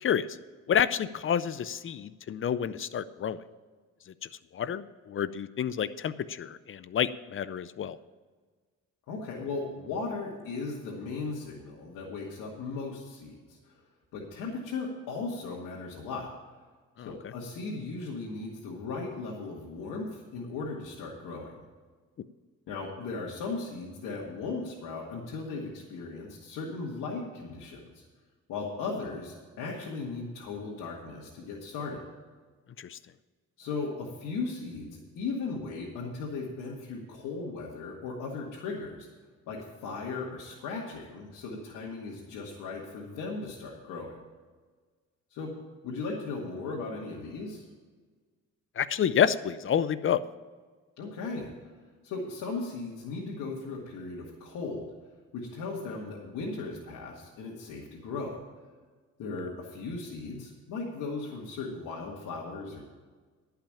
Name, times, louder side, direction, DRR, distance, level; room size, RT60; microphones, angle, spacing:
voice 1, 0.7-3.4 4.5-8.0 17.0-17.1 32.8-33.0 48.8-50.2, left 8 dB, 45° left, 15 dB, 0.5 m, -29 dB
voice 2, 9.1-13.6 14.1-16.3 17.0-21.6 22.7-28.0 28.5-32.1 33.6-39.1 39.5-44.2 45.3-45.5 45.8-47.7 51.0-51.5 52.0-54.9 55.3-58.4 59.2-62.8, left 3 dB, 90° left, -4 dB, 1.9 m, -37 dB
11.5 x 5.7 x 8.8 m, 1.4 s
cardioid pair, 90°, 30 cm